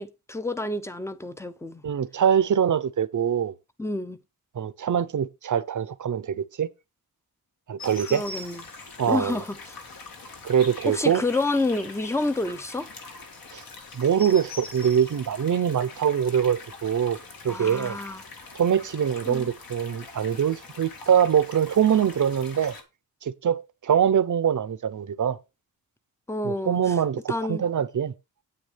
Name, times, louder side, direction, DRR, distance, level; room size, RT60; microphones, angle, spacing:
voice 1, 0.0-1.8 3.8-4.2 8.0-8.6 9.1-9.8 10.9-12.9 17.5-18.2 19.3-19.5 26.3-26.9 27.3-27.6, left 2 dB, 5° left, 0.7 m, -29 dB
voice 2, 1.8-3.5 4.5-6.7 7.7-8.3 9.0-9.4 10.4-11.2 13.5-13.6 13.9-17.2 17.4-18.0 18.5-22.7 23.2-25.4 26.4-28.1, right 8 dB, 50° right, 0.8 m, -23 dB
sound 1, 7.8-22.8, left 3 dB, 65° left, 2.2 m, -43 dB
9.1 x 9.0 x 3.4 m
wide cardioid pair, 180°, 38 cm